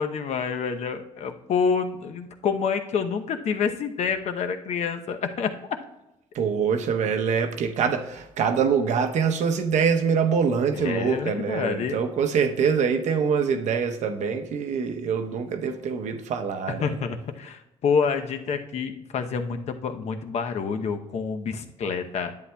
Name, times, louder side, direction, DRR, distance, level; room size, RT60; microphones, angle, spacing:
voice 1, 0.0-5.5 10.7-12.0 16.7-22.3, left 6 dB, 60° left, 6 dB, 0.8 m, -27 dB
voice 2, 6.3-16.9, right 6 dB, 70° right, 6 dB, 0.8 m, -24 dB
10.5 x 8.3 x 2.3 m, 0.90 s
cardioid pair, 95°, 13 cm